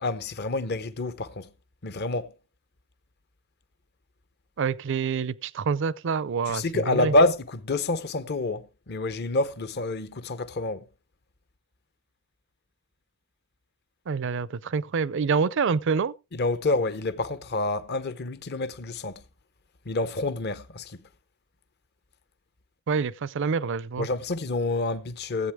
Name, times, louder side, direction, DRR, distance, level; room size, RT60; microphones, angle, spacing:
voice 1, 0.0-1.5 1.8-2.3 6.5-10.8 16.3-19.2 19.9-21.0 24.0-25.5, left 2 dB, 50° left, 0.8 m, -27 dB
voice 2, 4.6-7.1 14.1-16.1 22.9-24.1, right 5 dB, 60° right, 0.5 m, -27 dB
16.0 x 8.3 x 3.5 m
head